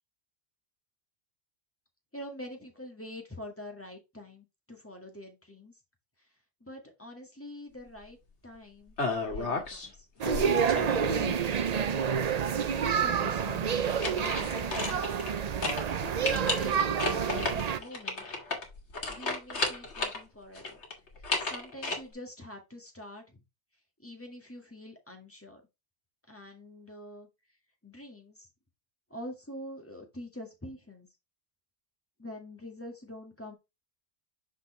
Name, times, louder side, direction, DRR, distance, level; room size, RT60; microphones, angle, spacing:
voice 1, 2.1-5.8 6.6-8.2 8.4-9.0 9.2-10.1 10.3-15.2 15.8-18.3 19.1-20.8 21.4-23.4 24.0-25.6 26.3-27.3 27.8-28.5 29.1-31.1 32.2-33.5, left 1 dB, 10° left, 2 dB, 1.9 m, -46 dB
sound 1, 9.0-9.9 10.2-11.5 13.7-15.4 15.6-15.8 16.2-20.2 20.5-22.0, left 3 dB, 85° left, 2.0 m, -33 dB
sound 2, 10.2-17.8, right 7 dB, 50° right, 0.5 m, -28 dB
6.4 x 5.3 x 3.2 m, 0.24 s
omnidirectional pair, 1.1 m